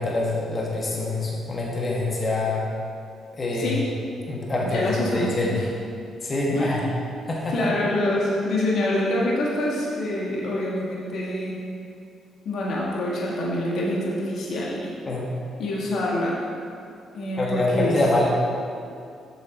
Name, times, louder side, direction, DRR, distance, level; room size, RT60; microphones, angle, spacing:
voice 1, 0.0-2.7 3.4-3.8 4.3-4.9 5.1-5.6 6.2-6.8 7.3-7.5 15.1-15.3 17.4-18.3, left 2 dB, 35° left, -3 dB, 1.3 m, -25 dB
voice 2, 4.6-5.7 6.5-6.8 7.5-11.6 12.4-14.8 15.6-16.4 17.1-18.0, left 1 dB, 70° left, -4 dB, 1.3 m, -26 dB
7.5 x 6.7 x 4.0 m, 2.4 s
cardioid pair, 90°, 0 cm